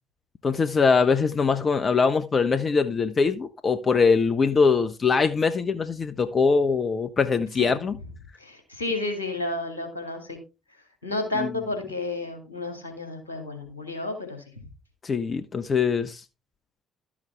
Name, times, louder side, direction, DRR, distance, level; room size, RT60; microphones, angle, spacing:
voice 1, 0.4-8.0 11.3-11.5 15.0-16.2, left 5 dB, 35° left, 0.8 m, -22 dB
voice 2, 8.4-10.4 11.0-14.4, left 2 dB, 90° left, 2.2 m, -31 dB
12.0 x 7.3 x 3.4 m
figure-of-eight pair, 50°, 0 cm